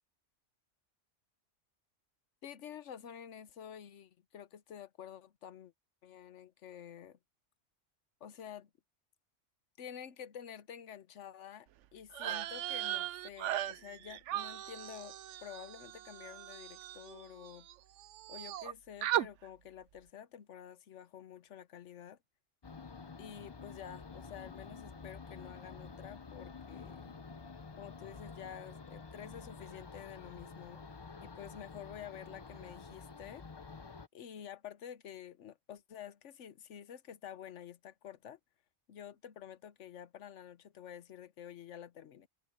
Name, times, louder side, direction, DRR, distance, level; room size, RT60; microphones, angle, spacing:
voice 1, 2.4-5.7 6.0-7.2 8.2-8.7 9.8-17.7 18.3-22.2 23.2-27.2 27.8-30.8 31.2-33.4 34.1-38.4 38.9-42.3, left 9 dB, 80° left, 1.2 m, -49 dB
sound 1, 12.1-17.7 18.0-18.7 19.0-19.3, right 13 dB, 80° right, 0.9 m, -38 dB
sound 2, 22.6-34.1, left 4 dB, 25° left, 0.6 m, -49 dB
omnidirectional pair, 1.2 m